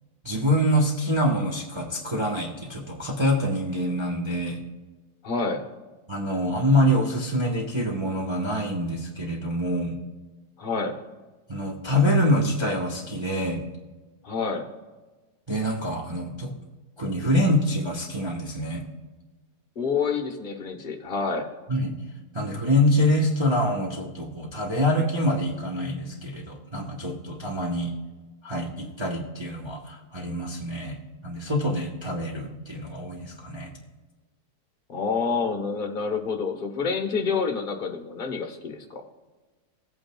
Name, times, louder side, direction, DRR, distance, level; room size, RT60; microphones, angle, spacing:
voice 1, 0.2-4.6 6.1-10.0 11.5-13.6 15.5-16.5 17.0-18.8 21.7-21.9 22.3-27.9 28.4-31.0 31.2-33.7, equal, 20° right, -2 dB, 1.0 m, -25 dB
voice 2, 5.2-5.6 10.6-10.9 14.2-14.7 19.8-21.5 34.9-39.0, left 5 dB, 35° left, 4 dB, 1.1 m, -28 dB
16.5 x 8.8 x 2.3 m, 1.3 s
omnidirectional pair, 1.7 m